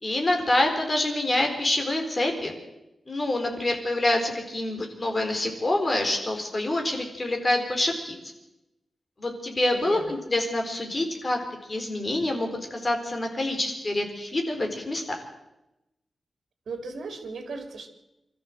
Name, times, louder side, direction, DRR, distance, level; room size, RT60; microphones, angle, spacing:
voice 1, 0.0-2.5 3.1-8.2 9.2-11.4 11.7-15.0, left 1 dB, 25° left, 3 dB, 4.1 m, -26 dB
voice 2, 9.7-10.2 16.7-17.9, right 4 dB, 80° right, 6 dB, 3.0 m, -36 dB
24.5 x 14.0 x 7.7 m, 0.92 s
wide cardioid pair, 165°, 0 cm